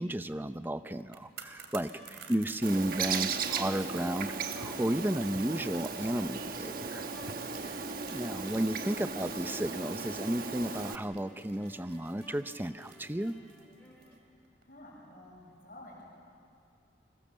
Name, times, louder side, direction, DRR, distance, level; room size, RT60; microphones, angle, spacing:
voice 1, 0.0-1.9 2.3-7.1 7.6-7.8 8.1-13.4, right 1 dB, 10° right, 11 dB, 0.6 m, -33 dB
sound 1, 1.0-14.2 14.4-14.6, right 8 dB, 85° right, 2.9 m, -52 dB
sound 2, 1.9-14.1, left 1 dB, 10° left, 5.1 m, -56 dB
voice 2, 2.0-2.5 9.0-9.2 14.1-16.0, left 1 dB, 50° left, -2 dB, 6.5 m, -54 dB
Bird, 2.6-11.0, right 5 dB, 50° right, 1.3 m, -36 dB
29.5 x 24.0 x 7.5 m, 2.5 s
head